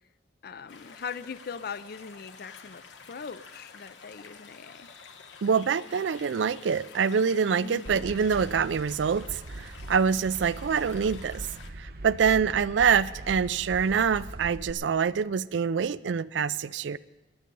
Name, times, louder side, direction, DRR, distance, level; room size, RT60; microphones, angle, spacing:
voice 1, 0.4-4.9 7.6-8.0, left 6 dB, 55° left, 15 dB, 0.5 m, -40 dB
sound 1, 0.7-11.7, left 5 dB, 85° left, 1.2 m, -49 dB
voice 2, 5.4-11.5 11.8-17.0, right 6 dB, 80° right, 18 dB, 0.4 m, -25 dB
sound 2, 7.8-14.7, right 1 dB, 55° right, 0.8 m, -41 dB
21.5 x 8.7 x 5.4 m, 1.1 s
head